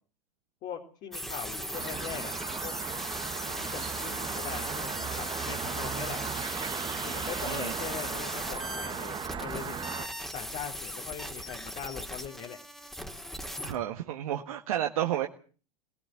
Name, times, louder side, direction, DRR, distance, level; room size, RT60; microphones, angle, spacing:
voice 1, 0.6-2.4 2.6-2.7 3.6-6.2 7.0-10.1 10.3-12.6, left 8 dB, 45° left, 2 dB, 3.6 m, -41 dB
sound 1, 1.1-13.8, equal, ahead, 3.2 m, -38 dB
sound 2, 1.7-10.1, right 7 dB, 25° right, 2.1 m, -37 dB
voice 2, 13.6-15.3, right 11 dB, 65° right, 4 dB, 1.6 m, -31 dB
19.5 x 18.0 x 7.6 m, 0.43 s
hypercardioid pair, 90°, 19 cm